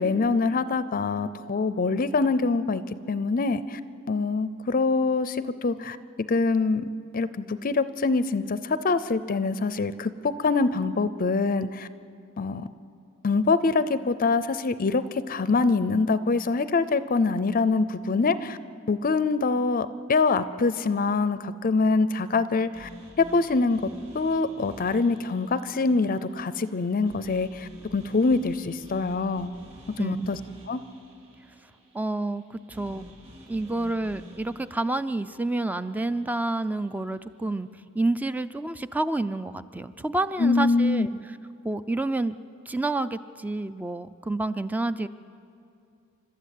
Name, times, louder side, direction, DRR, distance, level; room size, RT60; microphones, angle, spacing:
voice 1, 0.0-2.8 3.1-3.8 4.1-6.0 6.3-11.9 12.4-12.7 13.2-18.6 18.9-22.9 23.2-29.5 30.0-30.4 30.7-30.8 40.4-41.1, left 3 dB, 40° left, 14 dB, 0.5 m, -24 dB
sound 1, 22.7-36.9, equal, 30° right, 4.3 m, -49 dB
voice 2, 30.0-30.3 31.9-32.4 32.7-33.1 33.5-37.7 37.9-41.1 41.6-42.3 42.7-45.1, right 2 dB, 10° right, 12 dB, 0.4 m, -29 dB
29.5 x 13.0 x 8.4 m, 2.5 s
head